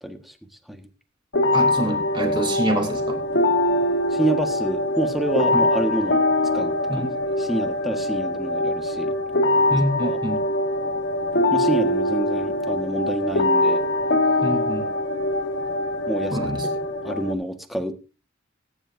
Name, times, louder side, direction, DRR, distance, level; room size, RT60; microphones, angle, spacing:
voice 1, 0.0-0.3 0.7-0.9 4.1-6.3 6.5-7.1 7.4-9.1 10.0-10.2 11.5-13.8 16.1-16.4 17.0-17.9, right 1 dB, ahead, 6 dB, 1.6 m, -27 dB
sound 1, 1.3-17.3, left 1 dB, 60° left, 1.4 m, -23 dB
voice 2, 1.5-3.2 5.5-5.6 6.9-7.1 9.7-10.4 14.4-14.9 16.3-16.7, right 1 dB, 25° right, 4 dB, 3.3 m, -26 dB
19.5 x 10.0 x 2.7 m, 0.31 s
head